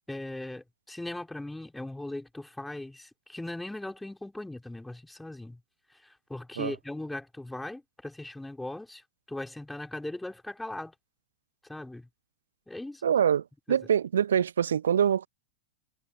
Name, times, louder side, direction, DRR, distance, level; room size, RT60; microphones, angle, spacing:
voice 1, 0.1-5.6 5.9-9.0 9.3-10.9 11.7-12.1 12.7-13.1 13.7-13.8, left 1 dB, 5° left, 4.0 m, -39 dB
voice 2, 13.0-15.3, right 8 dB, 65° right, 0.5 m, -25 dB
figure-of-eight pair, 90°, 0 cm